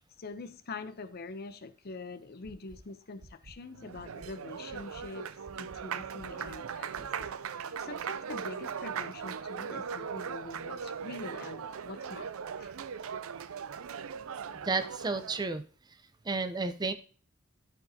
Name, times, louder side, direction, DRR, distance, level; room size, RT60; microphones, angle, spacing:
voice 1, 0.2-5.3 5.5-12.8, left 3 dB, 50° left, 0.7 m, -44 dB
sound 1, 2.4-2.8 3.2-3.5 3.9-4.3 4.7-5.0 5.4-5.8 6.2-6.5 6.9-7.3, right 2 dB, 55° right, 0.9 m, -51 dB
Applause, 3.7-15.5, right 7 dB, 90° right, 0.5 m, -39 dB
voice 2, 14.6-15.6 16.2-16.9, right 3 dB, 20° right, 0.6 m, -31 dB
12.5 x 4.8 x 2.8 m
head